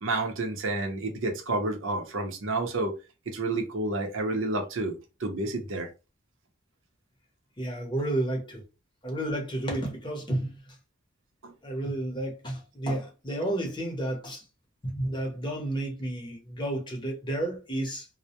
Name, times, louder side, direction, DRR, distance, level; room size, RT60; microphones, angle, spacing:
voice 1, 0.0-2.9 3.3-5.9 11.4-11.5, right 2 dB, 80° right, 0.6 m, -30 dB
voice 2, 7.6-8.6 9.0-10.7 11.6-14.4 14.8-18.1, right 1 dB, 25° left, 0.7 m, -31 dB
2.2 x 2.0 x 2.7 m
head